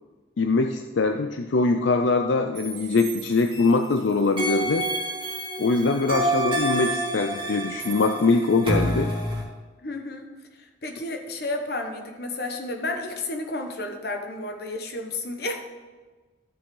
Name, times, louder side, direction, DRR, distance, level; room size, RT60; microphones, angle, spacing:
voice 1, 0.4-4.9 5.6-9.1, left 3 dB, 80° left, 6 dB, 0.5 m, -22 dB
sound 1, 2.5-3.9 4.4-9.4, right 1 dB, 25° right, 1.9 m, -28 dB
voice 2, 9.8-15.6, left 2 dB, 55° left, 4 dB, 1.2 m, -32 dB
13.0 x 6.3 x 3.9 m, 1.3 s
head